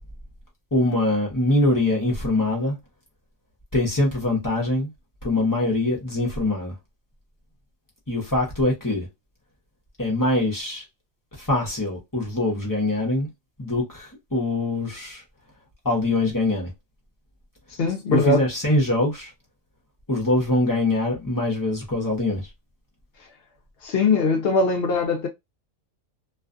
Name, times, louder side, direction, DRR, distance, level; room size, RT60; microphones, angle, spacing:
voice 1, 0.7-2.8 3.7-4.9 5.2-6.7 8.1-9.1 10.0-10.8 11.4-13.3 13.6-15.2 15.8-16.7 18.1-19.3 20.1-22.5, left 2 dB, 20° left, 0.6 m, -23 dB
voice 2, 17.8-18.4 23.8-25.3, left 3 dB, 60° left, 0.7 m, -21 dB
2.5 x 2.3 x 2.4 m
omnidirectional pair, 1.4 m